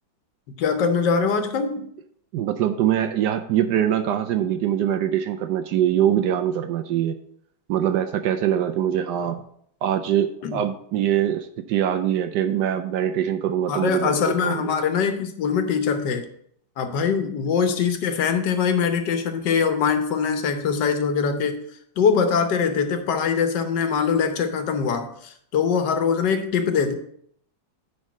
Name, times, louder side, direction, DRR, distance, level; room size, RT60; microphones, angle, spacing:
voice 1, 0.6-1.8 10.4-10.6 13.7-16.3 16.8-21.6 22.0-26.9, left 6 dB, 70° left, 7 dB, 1.4 m, -23 dB
voice 2, 2.3-7.1 7.7-9.4 9.8-14.7, right 10 dB, 75° right, 9 dB, 1.0 m, -23 dB
9.6 x 3.7 x 6.2 m, 0.67 s
omnidirectional pair, 2.1 m